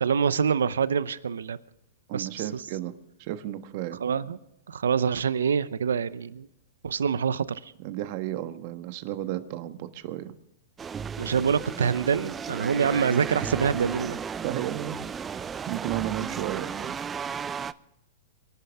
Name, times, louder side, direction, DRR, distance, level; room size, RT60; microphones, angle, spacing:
voice 1, 0.0-1.6 2.1-2.6 4.0-4.4 4.7-6.5 6.8-7.7 11.2-14.2, right 6 dB, 90° right, 17 dB, 0.7 m, -26 dB
voice 2, 2.1-4.0 7.8-10.3 14.4-15.0 15.3-17.0, right 13 dB, 50° right, 10 dB, 1.4 m, -33 dB
sound 1, 10.8-17.7, right 6 dB, 20° right, 0.5 m, -34 dB
24.5 x 11.5 x 3.6 m, 0.85 s
hypercardioid pair, 125°, 0 cm